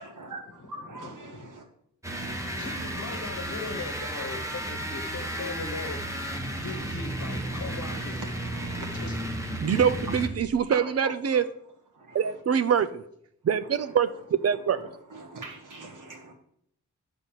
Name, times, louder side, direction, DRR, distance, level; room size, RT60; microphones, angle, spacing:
voice 1, 0.0-1.7 7.5-9.2 9.6-9.9 10.7-11.4 11.9-12.4 13.6-14.0 14.5-16.3, right 2 dB, 80° right, 2 dB, 1.8 m, -43 dB
voice 2, 1.0-1.5 2.5-6.0 6.6-8.2 8.8-9.1, left 4 dB, 60° left, 5 dB, 1.1 m, -39 dB
sound 1, 2.0-10.5, right 1 dB, 10° right, 1.0 m, -33 dB
voice 3, 9.6-11.4 12.1-13.0 13.4-14.8, right 7 dB, 50° right, 13 dB, 0.5 m, -24 dB
10.5 x 4.0 x 7.4 m, 0.72 s
wide cardioid pair, 180°, 31 cm